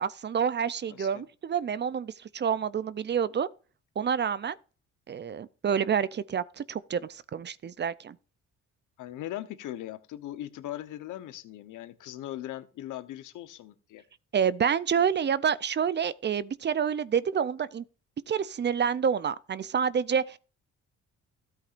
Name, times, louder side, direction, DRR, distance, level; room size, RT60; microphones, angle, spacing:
voice 1, 0.0-3.5 4.0-4.6 5.1-8.2 14.3-17.8 18.3-20.4, right 7 dB, 35° right, 0.5 m, -28 dB
voice 2, 0.9-1.2 9.0-14.0, left 13 dB, 85° left, 1.0 m, -39 dB
13.0 x 8.5 x 2.5 m
cardioid pair, 90°, 30 cm